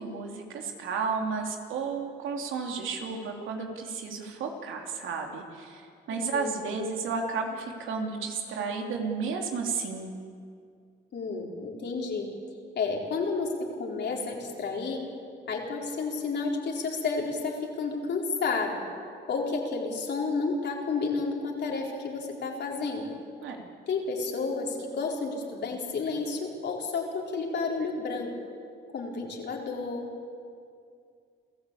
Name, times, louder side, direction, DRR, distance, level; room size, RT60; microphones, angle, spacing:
voice 1, 0.0-10.1 23.4-23.7, right 5 dB, 80° right, 2 dB, 3.1 m, -33 dB
voice 2, 11.1-12.3 12.8-15.0 15.5-18.8 19.3-23.1 23.9-28.3 28.9-30.1, left 4 dB, 60° left, -1 dB, 4.5 m, -31 dB
28.0 x 14.0 x 8.6 m, 2.3 s
cardioid pair, 90°, 20 cm